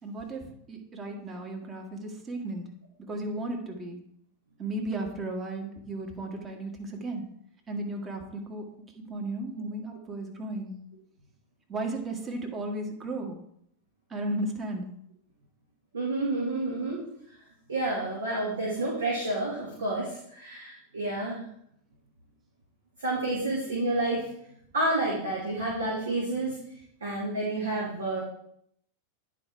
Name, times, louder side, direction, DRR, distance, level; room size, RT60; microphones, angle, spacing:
voice 1, 0.0-2.6 3.1-4.0 4.6-7.2 7.7-8.6 9.1-10.8 11.7-13.4 14.1-14.8, right 2 dB, 20° right, 2 dB, 1.7 m, -34 dB
voice 2, 15.9-17.0 17.7-21.4 23.0-24.3 24.7-26.5 27.0-28.2, right 2 dB, 65° right, -4 dB, 2.2 m, -29 dB
9.7 x 5.0 x 4.6 m, 0.69 s
figure-of-eight pair, 90°, 0 cm